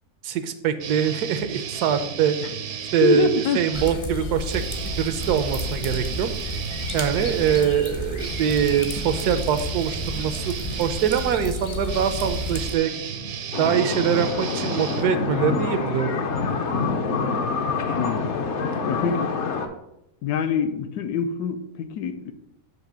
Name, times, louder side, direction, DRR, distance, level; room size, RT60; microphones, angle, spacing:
voice 1, 0.2-2.4 2.9-6.3 6.9-12.9 13.6-16.2, right 8 dB, 85° right, 10 dB, 1.2 m, -23 dB
sound 1, 0.8-4.0 4.4-15.6, right 7 dB, 65° right, 0.8 m, -34 dB
voice 2, 3.0-3.6 17.9-18.3 18.8-19.3 20.2-22.3, left 5 dB, 80° left, 9 dB, 1.1 m, -25 dB
sound 2, 3.7-12.8, left 1 dB, 30° left, 0.6 m, -31 dB
sound 3, 13.5-19.7, left 4 dB, 55° left, 0.9 m, -26 dB
7.7 x 2.9 x 6.1 m, 0.85 s
omnidirectional pair, 1.7 m